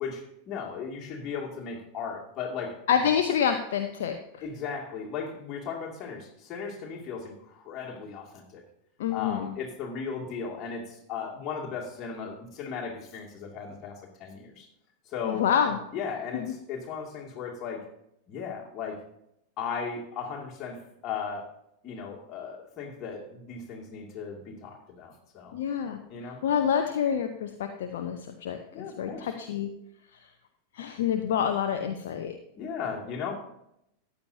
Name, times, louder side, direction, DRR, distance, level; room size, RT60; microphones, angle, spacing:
voice 1, 0.0-2.8 4.4-8.6 9.1-14.7 15.1-15.4 15.9-17.9 18.3-19.0 19.6-21.5 21.8-25.6 26.1-26.4 28.7-29.3 32.5-33.3, left 6 dB, 30° left, -2 dB, 2.4 m, -36 dB
voice 2, 2.9-4.4 9.0-9.5 15.2-15.8 16.3-16.5 25.5-29.7 30.7-32.4, left 8 dB, 55° left, 5 dB, 0.7 m, -28 dB
14.0 x 9.8 x 2.8 m, 0.80 s
figure-of-eight pair, 90°, 0 cm